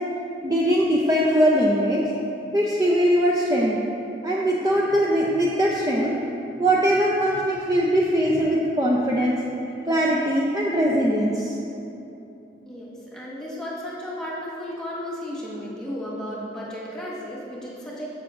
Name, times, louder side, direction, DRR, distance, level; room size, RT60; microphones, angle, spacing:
voice 1, 0.4-2.0 2.5-3.8 4.2-6.1 6.6-9.4 9.8-11.6, equal, 20° right, -4 dB, 0.6 m, -21 dB
voice 2, 9.3-9.8 12.6-18.1, equal, 5° left, -7 dB, 1.6 m, -34 dB
14.5 x 6.0 x 2.5 m, 2.9 s
head